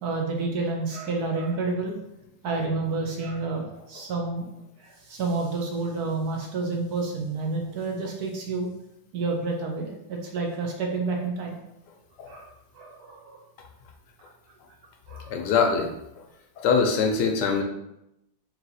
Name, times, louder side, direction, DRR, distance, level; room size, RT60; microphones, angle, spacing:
voice 1, 0.0-2.0 2.4-4.5 4.8-8.7 9.1-11.6 12.3-13.4 15.1-15.3, right 3 dB, 70° right, 1 dB, 1.0 m, -29 dB
voice 2, 15.3-15.9 16.6-17.6, left 5 dB, 75° left, 4 dB, 1.1 m, -23 dB
4.0 x 2.8 x 4.0 m, 0.84 s
omnidirectional pair, 2.0 m